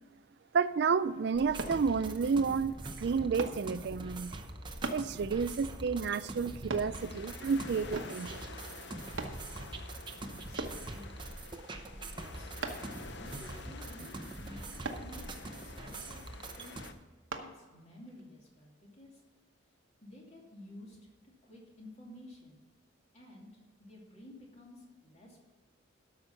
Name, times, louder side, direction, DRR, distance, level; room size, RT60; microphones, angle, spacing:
voice 1, 0.5-4.4 4.9-8.5, right 5 dB, 55° right, 14 dB, 0.4 m, -31 dB
sound 1, 1.3-16.9, right 2 dB, 25° right, 0.8 m, -44 dB
sound 2, 1.6-1.8 3.4-3.6 4.8-5.1 6.7-6.9 7.9-8.2 9.2-9.4 10.6-10.8 12.6-12.9 14.8-15.1 17.3-17.5 18.1-18.2, right 3 dB, 85° right, 1.1 m, -38 dB
sound 3, 6.9-16.9, left 4 dB, 60° left, 0.6 m, -50 dB
voice 2, 10.2-11.3 12.2-12.6 13.1-16.8 17.4-19.2 20.0-21.0 21.2-22.6 23.1-25.4, left 1 dB, 35° left, -2 dB, 2.6 m, -53 dB
12.5 x 6.0 x 6.6 m, 1.2 s
head